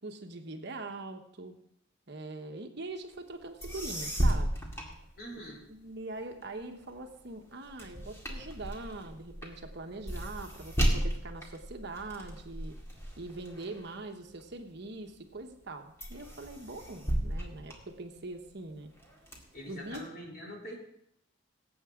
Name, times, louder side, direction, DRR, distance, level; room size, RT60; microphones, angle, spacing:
voice 1, 0.0-1.5 2.1-4.5 5.7-12.8 13.2-18.9 19.7-20.0, right 2 dB, 55° right, 4 dB, 1.2 m, -42 dB
Hydraulic Office Chair, 3.3-3.4 3.6-5.7 6.2-14.8 15.3-15.7 16.0-18.5 19.0-20.0, right 1 dB, 15° left, 2.0 m, -34 dB
voice 2, 5.2-5.6 19.5-20.8, equal, 50° left, -3 dB, 3.7 m, -44 dB
18.0 x 8.2 x 3.7 m, 0.72 s
head